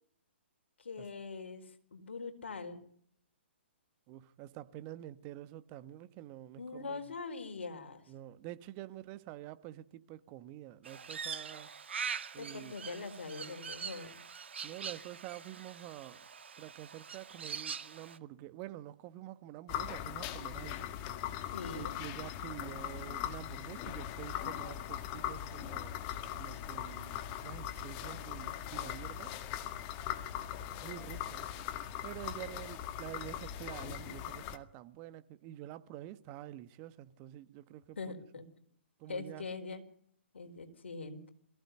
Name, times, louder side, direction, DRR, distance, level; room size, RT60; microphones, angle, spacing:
voice 1, 0.8-2.8 6.6-8.0 12.4-14.2 21.5-22.0 38.0-38.4 39.1-39.8 40.3-41.3, left 4 dB, 70° left, 4.4 m, -43 dB
voice 2, 4.1-7.1 8.1-11.7 12.3-12.7 14.6-16.3 16.6-20.9 21.7-26.0 26.3-29.4 30.8-31.5 32.0-38.0 39.0-39.5, right 14 dB, 30° right, 1.2 m, -48 dB
Crow, 10.8-18.2, right 6 dB, 70° right, 1.7 m, -43 dB
sound 1, 19.7-34.6, left 11 dB, 35° left, 1.8 m, -40 dB
23.0 x 16.0 x 9.4 m
figure-of-eight pair, 130°, 6 cm